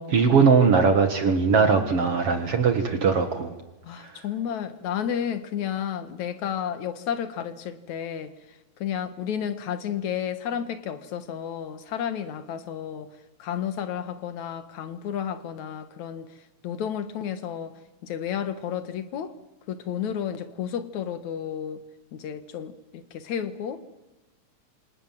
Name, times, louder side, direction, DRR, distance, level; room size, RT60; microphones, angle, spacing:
voice 1, 0.1-3.5, right 5 dB, 55° right, 8 dB, 2.6 m, -20 dB
voice 2, 3.8-8.3 8.8-13.1 13.4-16.3 16.6-19.3 19.7-21.8 22.1-23.8, left 9 dB, 75° left, 11 dB, 2.9 m, -32 dB
27.5 x 27.0 x 7.6 m, 1.0 s
omnidirectional pair, 3.3 m